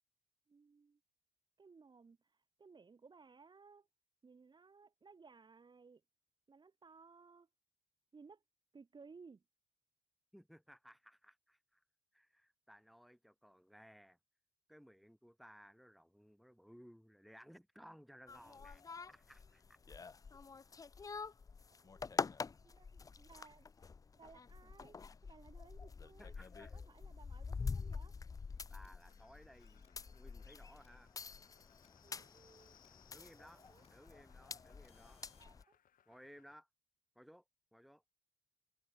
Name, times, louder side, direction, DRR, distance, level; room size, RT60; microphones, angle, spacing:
voice 1, 0.5-1.0 1.6-3.9 4.2-6.0 6.5-7.5 8.1-8.4 8.7-9.4 21.7-22.0 22.6-28.1 32.0-32.8 33.1-33.9 35.4-35.8, right 4 dB, 25° right, 4.6 m, -61 dB
voice 2, 10.3-11.8 12.1-14.2 14.7-19.8 26.2-26.8 28.7-31.1 33.1-33.6 33.9-35.2 36.1-36.7 37.2-37.4 37.7-38.0, equal, ahead, 5.4 m, -60 dB
sound 1, 18.3-35.6, left 5 dB, 20° left, 0.6 m, -46 dB
sound 2, 28.6-28.9 29.6-29.9 30.6-30.9 31.6-31.9 32.6-32.9 33.6-33.9 34.6-35.5, left 6 dB, 35° left, 5.9 m, -73 dB
sound 3, 29.0-36.6, left 10 dB, 55° left, 5.8 m, -71 dB
open air
cardioid pair, 110°, 17 cm